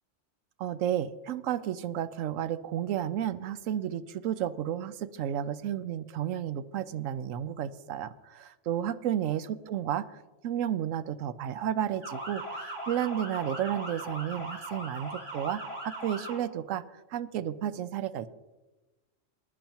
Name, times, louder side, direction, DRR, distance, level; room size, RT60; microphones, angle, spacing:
voice 1, 0.6-16.8 17.1-18.3, right 10 dB, 90° right, 13 dB, 1.0 m, -32 dB
Motor vehicle (road) / Siren, 12.0-16.4, right 1 dB, 65° right, 4.1 m, -39 dB
20.5 x 10.5 x 2.9 m, 1.1 s
omnidirectional pair, 1.3 m